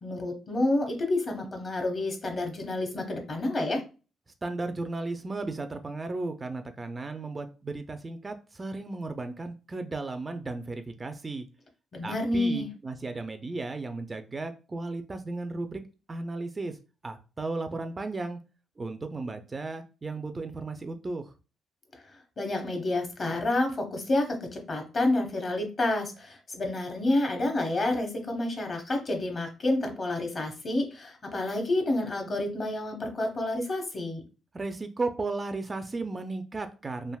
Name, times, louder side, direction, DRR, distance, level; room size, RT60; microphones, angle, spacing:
voice 1, 0.0-3.8 11.9-12.7 21.9-22.0 22.4-34.2, left 2 dB, 40° left, 4 dB, 0.8 m, -29 dB
voice 2, 4.4-11.4 12.0-15.8 16.1-16.8 17.0-18.4 18.8-21.3 34.5-37.2, right 3 dB, 25° right, 8 dB, 0.3 m, -35 dB
3.4 x 2.5 x 2.2 m, 0.33 s
cardioid pair, 90°, 0 cm